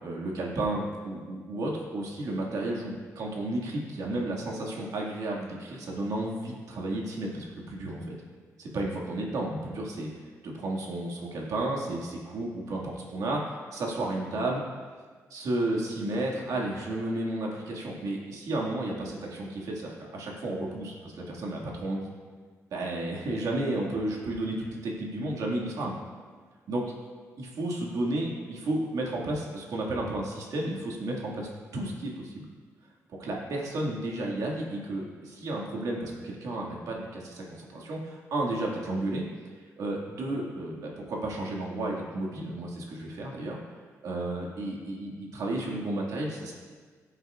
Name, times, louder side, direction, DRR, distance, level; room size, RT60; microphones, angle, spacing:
voice 1, 0.0-8.2 8.6-10.1 10.4-14.6 15.3-22.0 22.7-25.9 26.7-26.9 27.4-32.5 33.2-39.3 39.8-43.6 44.0-46.5, right 1 dB, 85° right, -2 dB, 1.9 m, -32 dB
15.5 x 8.0 x 2.4 m, 1.5 s
wide cardioid pair, 160°, 6 cm